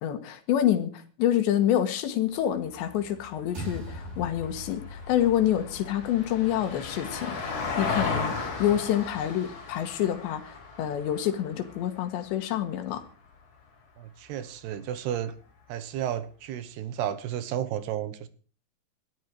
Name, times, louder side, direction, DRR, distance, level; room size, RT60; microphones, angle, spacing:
voice 1, 0.0-13.0, left 11 dB, 85° left, 9 dB, 4.0 m, -27 dB
Vehicle, 2.5-13.0 15.3-15.4, left 4 dB, 65° left, 6.2 m, -36 dB
sound 1, 3.5-8.1, equal, 55° right, 7.2 m, -42 dB
voice 2, 14.0-15.3 15.7-18.3, right 10 dB, 75° right, 14 dB, 3.1 m, -32 dB
19.0 x 12.5 x 4.7 m, 0.38 s
omnidirectional pair, 5.0 m